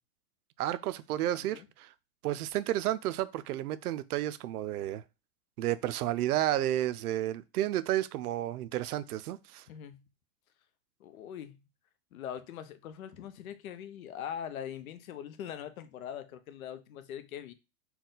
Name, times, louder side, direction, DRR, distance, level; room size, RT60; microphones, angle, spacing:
voice 1, 0.6-1.9 2.2-5.0 5.6-9.6, right 13 dB, 90° right, 0.5 m, -31 dB
voice 2, 9.7-10.0 11.0-11.6 12.1-17.5, left 9 dB, 70° left, 0.7 m, -42 dB
4.3 x 2.3 x 3.8 m
supercardioid pair, 175°, 44 cm